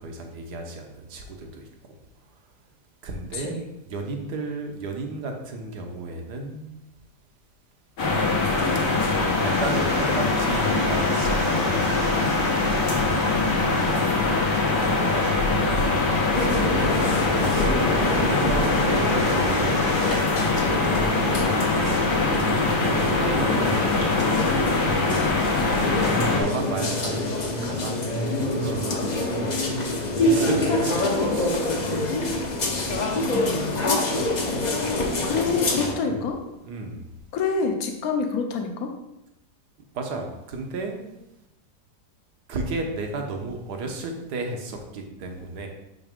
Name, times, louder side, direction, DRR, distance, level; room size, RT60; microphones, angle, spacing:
voice 1, 0.0-2.4 3.0-6.7 8.8-12.3 14.2-16.2 17.2-17.7 17.9-20.0 20.7-31.6 36.0-36.2 36.6-37.1 39.9-41.1 42.5-45.7, right 3 dB, 70° right, 3 dB, 1.5 m, -34 dB
voice 2, 3.3-3.7 13.2-13.9 33.2-34.1 35.2-36.4 37.3-39.0, left 4 dB, 65° left, 4 dB, 1.3 m, -28 dB
sound 1, 8.0-26.4, left 3 dB, 80° left, 2.0 m, -23 dB
sound 2, 8.5-20.2, right 3 dB, 45° right, 0.7 m, -40 dB
sound 3, 16.3-35.9, left 2 dB, 40° left, 0.7 m, -26 dB
6.2 x 5.8 x 3.6 m, 0.89 s
omnidirectional pair, 1.8 m